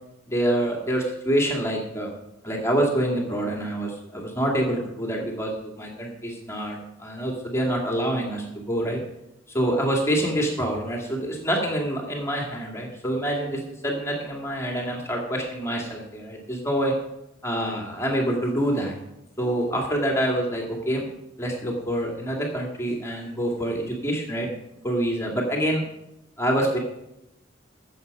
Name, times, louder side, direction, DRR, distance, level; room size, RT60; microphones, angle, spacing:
voice 1, 0.3-2.1 2.4-9.0 9.5-16.9 17.4-18.9 19.4-21.0 21.4-24.5 24.8-25.8 26.4-26.8, right 1 dB, 15° left, 0 dB, 2.3 m, -26 dB
14.5 x 7.5 x 5.4 m, 0.88 s
head